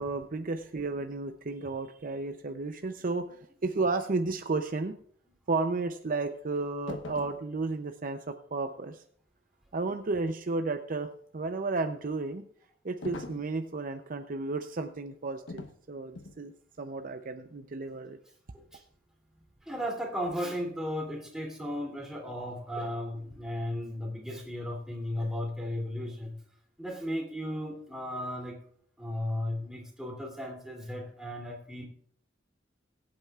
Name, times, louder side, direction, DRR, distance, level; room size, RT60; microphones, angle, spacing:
voice 1, 0.0-3.3 3.6-5.0 5.5-9.0 9.7-12.4 12.8-16.5 16.8-18.2, right 3 dB, 50° right, 7 dB, 0.6 m, -33 dB
voice 2, 3.0-3.3 18.5-18.8 19.6-26.4 26.8-28.6 29.0-31.8, equal, 5° right, -2 dB, 2.9 m, -35 dB
sound 1, 6.9-7.4 13.0-13.5 15.5-15.8 16.1-16.4, left 2 dB, 85° left, 1.1 m, -41 dB
21.5 x 8.7 x 2.4 m, 0.62 s
head